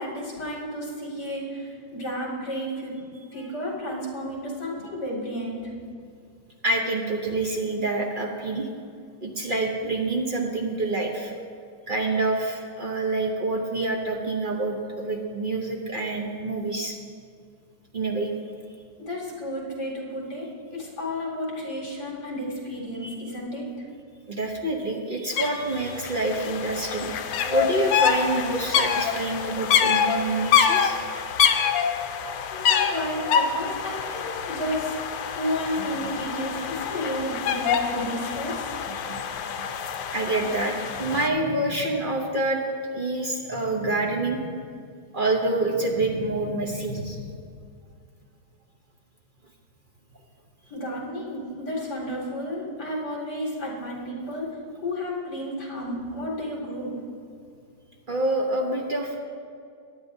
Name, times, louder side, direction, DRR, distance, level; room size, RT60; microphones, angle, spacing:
voice 1, 0.0-3.0 3.3-5.7 19.0-23.7 32.5-38.7 50.7-54.5 54.8-57.0, equal, 60° left, -3 dB, 3.0 m, -32 dB
voice 2, 6.6-8.7 9.2-11.3 11.9-17.0 17.9-18.3 23.0-23.1 24.3-27.1 27.5-31.0 38.8-39.7 40.1-42.6 42.9-44.4 45.1-47.2 58.1-59.2, right 2 dB, 40° right, 0 dB, 0.7 m, -27 dB
sound 1, 25.4-25.5 25.7-41.3, left 7 dB, 80° left, 1.4 m, -26 dB
sound 2, 40.8-42.4 43.4-44.9 45.3-47.6, equal, 80° right, 2.4 m, -40 dB
17.0 x 11.0 x 2.7 m, 2.3 s
omnidirectional pair, 2.0 m